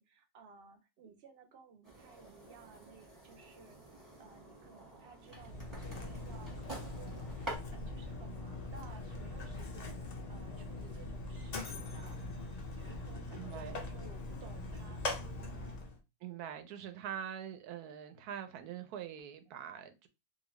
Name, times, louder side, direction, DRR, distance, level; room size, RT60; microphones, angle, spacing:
voice 1, 0.0-12.2 12.8-15.1 15.4-15.6, right 5 dB, 60° right, 0.6 m, -57 dB
sound 1, 1.8-7.6, right 2 dB, 15° right, 1.0 m, -49 dB
Mechanisms, 5.2-16.0, left 2 dB, 75° left, 0.3 m, -42 dB
voice 2, 13.3-13.8 16.2-20.1, right 9 dB, 80° right, 1.1 m, -44 dB
2.8 x 2.7 x 3.0 m
omnidirectional pair, 1.6 m